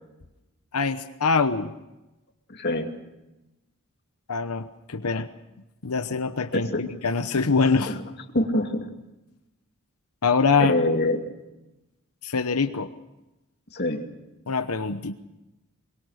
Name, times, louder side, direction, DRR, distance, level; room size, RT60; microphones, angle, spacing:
voice 1, 0.7-1.7 4.3-5.3 5.8-8.0 10.2-10.7 12.2-12.9 14.5-15.1, left 4 dB, 85° left, 9 dB, 1.0 m, -24 dB
voice 2, 2.6-2.9 5.1-5.2 6.5-6.8 7.9-8.0 8.3-8.9 10.6-11.2 13.7-14.0, left 1 dB, 45° left, 3 dB, 2.5 m, -25 dB
23.0 x 21.5 x 6.5 m, 0.99 s
head